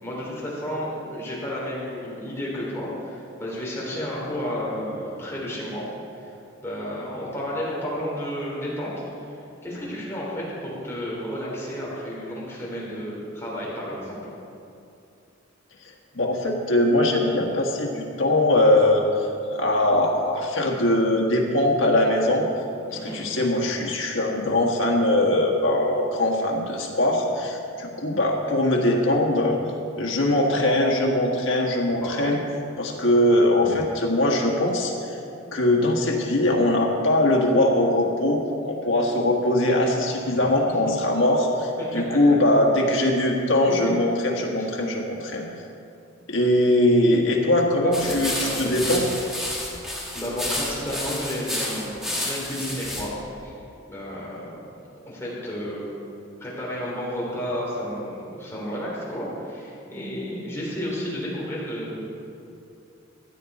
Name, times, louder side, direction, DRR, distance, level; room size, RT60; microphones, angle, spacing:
voice 1, 0.0-5.8 6.2-6.3 6.6-9.0 9.6-14.2 22.9-23.2 32.0-32.3 40.2-40.7 41.8-42.0 44.6-44.7 47.8-48.7 50.1-53.1 53.4-53.6 53.9-54.6 55.1-55.9 56.4-62.0, equal, 15° left, -6 dB, 3.3 m, -32 dB
voice 2, 16.1-19.2 19.5-22.5 22.9-29.6 30.0-32.4 32.8-35.2 35.5-45.4 46.3-49.0, left 1 dB, 80° left, -1 dB, 1.7 m, -21 dB
sound 1, 47.9-53.0, left 1 dB, ahead, 1.9 m, -30 dB
15.0 x 9.6 x 4.2 m, 2.6 s
head